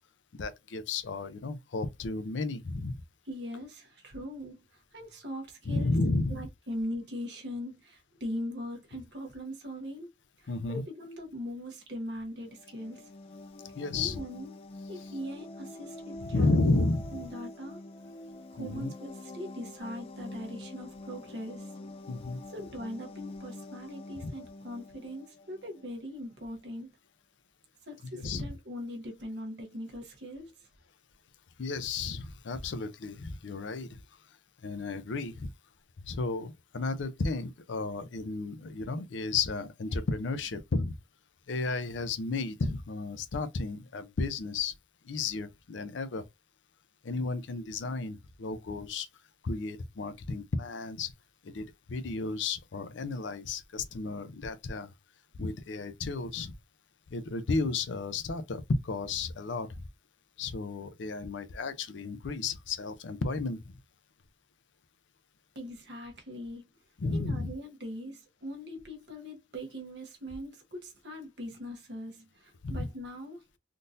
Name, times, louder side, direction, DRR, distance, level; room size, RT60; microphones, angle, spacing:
voice 1, 0.3-3.0 5.7-6.4 10.5-10.8 13.8-14.2 16.2-17.3 18.6-18.9 22.1-22.4 24.2-24.3 28.1-28.4 31.6-34.0 34.6-35.5 36.0-41.0 41.5-44.7 45.0-46.2 47.0-49.1 49.4-51.1 51.4-54.9 55.3-56.5 57.1-59.8 60.4-63.7 67.0-67.5 72.6-72.9, left 3 dB, 90° left, 0.5 m, -33 dB
voice 2, 3.3-6.0 6.3-10.1 10.4-13.1 13.9-14.5 14.9-16.5 17.1-17.8 18.5-21.7 22.5-27.0 27.8-30.7 65.5-66.6 67.1-73.6, equal, 65° right, 1.0 m, -41 dB
sound 1, 12.4-26.0, left 2 dB, 30° left, 0.3 m, -46 dB
3.7 x 2.6 x 2.5 m
head